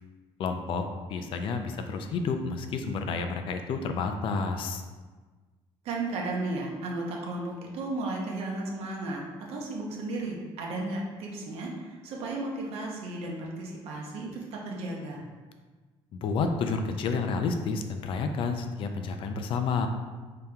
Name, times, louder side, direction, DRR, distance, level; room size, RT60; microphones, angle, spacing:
voice 1, 0.4-4.8 16.2-19.9, left 4 dB, 55° left, 6 dB, 0.4 m, -30 dB
voice 2, 5.8-9.2 9.5-15.2, right 2 dB, 70° right, -2 dB, 0.8 m, -34 dB
5.0 x 2.8 x 2.3 m, 1.3 s
cardioid pair, 140°, 11 cm